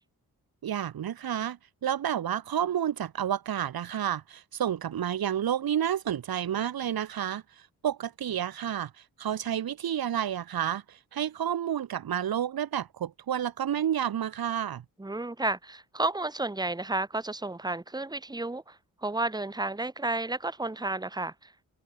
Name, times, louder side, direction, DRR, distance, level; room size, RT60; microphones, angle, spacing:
voice 1, 0.6-8.9 9.2-14.8, right 10 dB, 70° right, 1.4 m, -30 dB
voice 2, 15.0-21.5, right 2 dB, 10° right, 1.5 m, -32 dB
cardioid pair, 70°, 37 cm